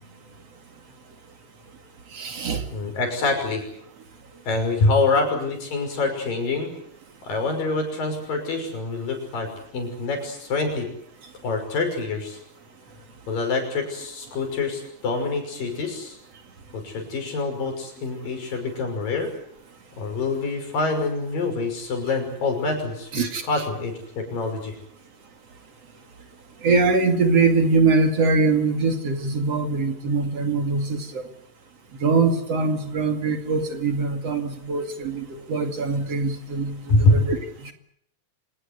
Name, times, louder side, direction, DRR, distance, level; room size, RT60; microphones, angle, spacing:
voice 1, 2.1-2.7 23.1-23.4 26.6-31.2 32.0-37.7, right 4 dB, 50° right, 6 dB, 3.2 m, -23 dB
voice 2, 2.7-3.6 4.5-6.7 7.2-9.5 9.7-10.9 11.4-12.4 13.3-16.2 16.7-19.3 20.0-24.8 36.9-37.2, left 3 dB, 80° left, 5 dB, 7.7 m, -25 dB
26.5 x 19.5 x 8.2 m, 0.71 s
omnidirectional pair, 3.9 m